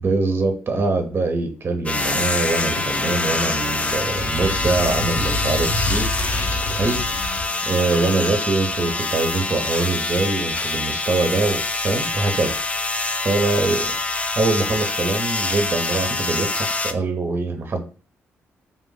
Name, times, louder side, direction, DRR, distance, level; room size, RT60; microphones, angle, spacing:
voice 1, 0.0-6.3 6.8-7.0 7.7-12.6 13.2-13.9 14.3-17.8, right 3 dB, 45° right, 5 dB, 0.8 m, -23 dB
sound 1, 1.9-9.0, left 4 dB, 85° left, 0.7 m, -38 dB
sound 2, 1.9-16.9, left 3 dB, 25° left, 0.5 m, -25 dB
sound 3, 4.2-7.5, left 1 dB, 55° left, 1.3 m, -26 dB
3.9 x 2.5 x 3.9 m, 0.39 s
supercardioid pair, 60°, 5 cm